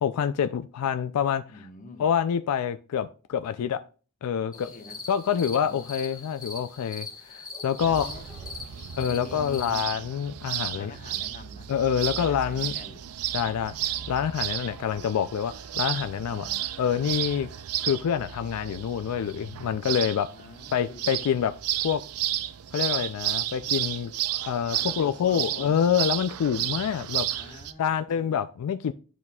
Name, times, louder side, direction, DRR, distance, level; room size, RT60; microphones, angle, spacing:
voice 1, 0.0-1.4 2.0-3.8 4.2-4.7 5.1-8.1 9.0-10.9 11.7-12.7 13.3-16.5 16.8-17.5 17.8-20.3 20.7-21.5 21.8-22.0 22.7-24.1 24.5-27.4 27.8-28.9, left 8 dB, 75° left, 0.3 m, -27 dB
voice 2, 1.5-2.1 4.5-5.0 5.6-5.9 7.8-8.2 9.1-9.8 10.7-11.7 12.0-13.1 16.2-16.6 20.3-21.2 24.7-25.9 27.4-28.4, left 3 dB, 35° left, 0.9 m, -46 dB
sound 1, 4.5-9.7, left 3 dB, 15° left, 1.2 m, -42 dB
sound 2, 7.8-27.7, right 12 dB, 75° right, 0.4 m, -33 dB
11.0 x 4.1 x 2.3 m
head